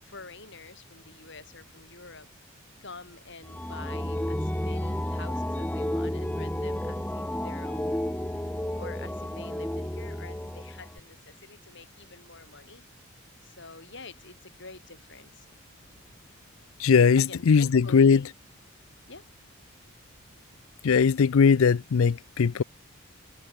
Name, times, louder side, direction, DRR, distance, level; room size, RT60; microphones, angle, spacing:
voice 1, 0.0-2.3 2.8-8.0 8.8-12.8 13.4-15.5 17.2-18.3 19.1-19.2, left 4 dB, 60° left, 6.9 m, -47 dB
sound 1, 3.4-11.0, left 1 dB, 10° left, 0.8 m, -31 dB
voice 2, 16.8-18.2 20.8-22.6, left 6 dB, 75° left, 0.4 m, -20 dB
head